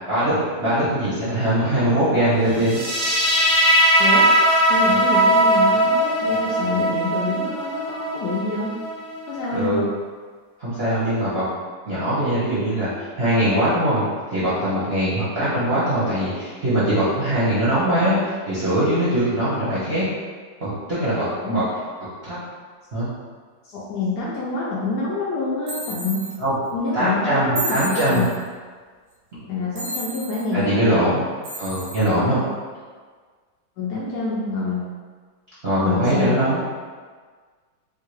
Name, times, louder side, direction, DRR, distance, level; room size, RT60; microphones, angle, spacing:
voice 1, 0.1-2.8 9.5-9.8 10.6-11.4 11.9-20.0 20.6-21.7 22.2-22.4 22.9-23.1 26.4-26.5 26.9-28.2 30.5-31.2 31.6-32.4 35.6-36.6, right 1 dB, 45° right, -11 dB, 0.8 m, -21 dB
sound 1, 2.6-9.7, right 1 dB, 90° right, 1.4 m, -19 dB
voice 2, 4.7-8.7 9.3-9.8 21.3-21.6 23.6-26.3 26.7-28.3 29.5-30.9 32.3-32.4 33.8-34.9 35.8-36.4, left 3 dB, 70° left, -6 dB, 1.0 m, -27 dB
sound 2, 25.7-26.4 27.5-28.4 29.7-30.5 31.4-32.1, right 1 dB, 65° right, 1.1 m, -31 dB
3.5 x 2.3 x 3.1 m, 1.6 s
omnidirectional pair, 2.0 m